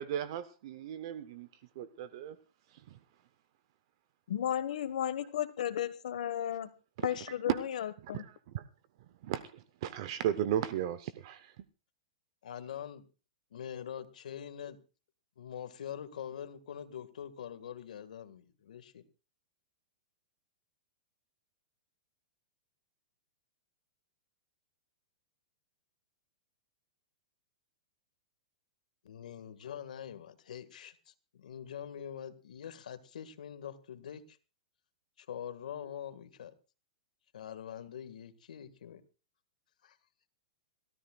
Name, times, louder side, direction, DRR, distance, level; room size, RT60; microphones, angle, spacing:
voice 1, 0.0-1.5 1.8-2.4 2.9-3.0 7.5-7.6 8.1-8.2 8.5-8.6 9.2-11.5, right 10 dB, 40° right, 14 dB, 0.7 m, -35 dB
voice 2, 4.3-6.7 7.0-8.2, left 10 dB, 65° left, 13 dB, 1.4 m, -34 dB
voice 3, 12.4-13.0 13.5-14.8 15.4-19.0 29.0-34.4 35.2-36.5 37.3-39.0 39.8-40.0, left 9 dB, 85° left, 12 dB, 1.7 m, -44 dB
26.5 x 13.5 x 2.3 m, 0.32 s
supercardioid pair, 175°, 4 cm